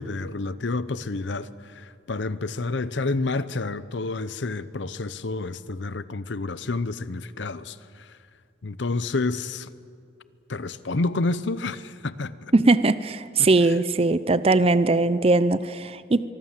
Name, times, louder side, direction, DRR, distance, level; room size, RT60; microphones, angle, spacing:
voice 1, 0.0-8.2 8.6-9.7 10.5-12.5 13.4-13.7, left 3 dB, 70° left, 0.8 m, -29 dB
voice 2, 12.5-16.2, right 3 dB, 30° right, 0.5 m, -20 dB
24.5 x 23.5 x 7.4 m
head